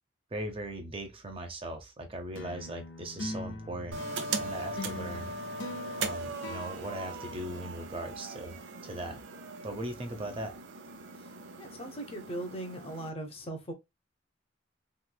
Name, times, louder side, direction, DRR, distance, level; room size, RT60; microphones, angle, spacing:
voice 1, 0.3-4.0 4.3-5.3 6.0-9.2 9.6-10.6, right 1 dB, 30° right, 0.6 m, -39 dB
sound 1, 2.3-8.0, left 2 dB, 85° left, 0.6 m, -43 dB
sound 2, 3.9-13.1, right 3 dB, 80° right, 0.6 m, -39 dB
voice 2, 11.6-13.7, right 1 dB, 30° left, 0.8 m, -39 dB
3.1 x 3.1 x 2.2 m
head